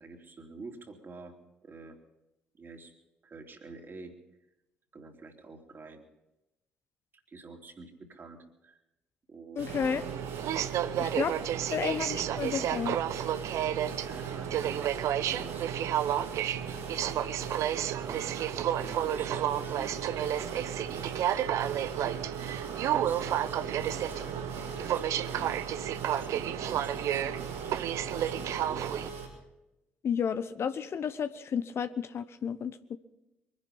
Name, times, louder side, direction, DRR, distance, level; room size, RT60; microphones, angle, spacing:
voice 1, 0.0-1.4 1.6-2.0 2.5-2.9 3.2-4.1 4.9-6.0 7.1-8.8 9.3-9.7 10.9-12.5 14.0-15.8 16.1-17.4 18.0-18.2 18.8-21.2 22.0-22.4 22.7-25.5 26.1-28.9, right 3 dB, 40° right, 3 dB, 3.1 m, -48 dB
voice 2, 9.6-10.0 11.0-11.3 11.7-13.0 30.0-33.0, left 7 dB, 50° left, 12 dB, 0.9 m, -32 dB
sound 1, 9.6-29.3, right 5 dB, 85° right, 4.6 m, -41 dB
Aircraft, 9.7-29.1, right 11 dB, 60° right, 0.7 m, -31 dB
23.0 x 10.5 x 5.5 m, 0.93 s
hypercardioid pair, 50°, 6 cm